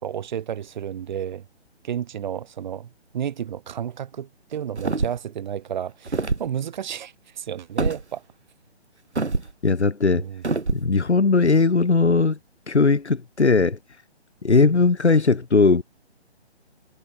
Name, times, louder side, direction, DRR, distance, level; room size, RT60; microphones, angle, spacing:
voice 1, 0.0-1.4 1.8-8.2 10.1-10.4, right 9 dB, 45° right, 3.7 m, -32 dB
sound 1, 4.8-5.3 6.1-6.5 7.8-8.0 9.2-9.5 10.4-10.9, right 3 dB, 90° right, 4.6 m, -25 dB
voice 2, 9.6-10.3 10.7-12.4 12.7-13.8 14.4-15.8, left 4 dB, 80° left, 3.4 m, -18 dB
figure-of-eight pair, 150°, 33 cm